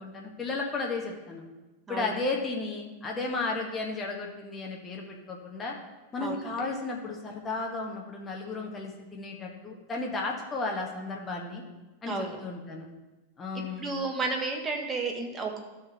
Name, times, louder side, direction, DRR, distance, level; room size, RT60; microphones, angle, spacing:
voice 1, 0.0-1.4 1.9-5.7 6.1-11.6 12.0-12.9 13.4-13.9, left 3 dB, 20° left, -1 dB, 1.7 m, -34 dB
voice 2, 12.1-12.4 13.8-15.6, right 3 dB, 20° right, 2 dB, 1.5 m, -32 dB
12.5 x 4.4 x 5.6 m, 1.1 s
figure-of-eight pair, 90°, 0 cm